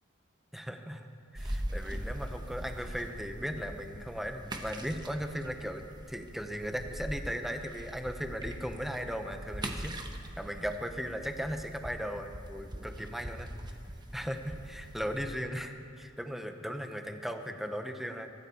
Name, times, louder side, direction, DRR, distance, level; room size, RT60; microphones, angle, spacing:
voice 1, 0.5-1.0 1.3-10.0 10.4-13.5 14.1-18.3, equal, ahead, 6 dB, 0.9 m, -37 dB
sound 1, 1.4-15.4, right 1 dB, 20° right, 1.1 m, -42 dB
23.0 x 14.0 x 4.3 m, 2.6 s
head